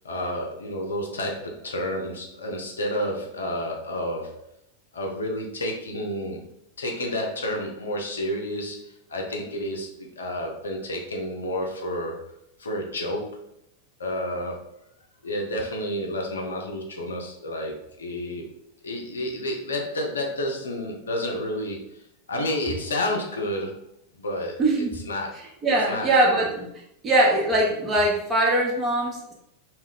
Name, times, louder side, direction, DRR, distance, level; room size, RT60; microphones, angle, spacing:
voice 1, 0.0-4.5 4.9-6.5 6.8-12.3 12.6-13.5 14.0-14.7 15.2-18.5 18.8-23.8 24.2-24.6 25.1-25.4 25.9-26.4, left 1 dB, 70° left, 1 dB, 0.5 m, -30 dB
voice 2, 24.6-24.9 25.6-26.7 27.0-29.3, right 1 dB, 20° right, -3 dB, 0.8 m, -21 dB
2.2 x 2.1 x 3.6 m, 0.77 s
figure-of-eight pair, 90°, 0 cm